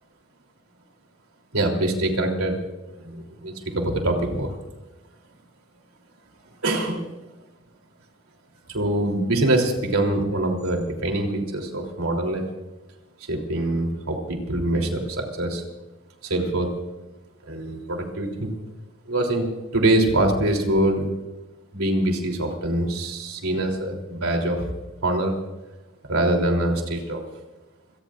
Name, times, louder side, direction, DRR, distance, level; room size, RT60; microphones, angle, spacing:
voice 1, 1.5-2.6 3.0-4.6 6.6-7.1 8.7-12.4 13.3-15.6 16.2-16.7 17.5-18.5 19.1-21.1 21.7-24.7 25.0-25.3 26.1-27.2, right 1 dB, 80° right, 2 dB, 3.3 m, -24 dB
27.0 x 18.5 x 2.5 m, 1.1 s
head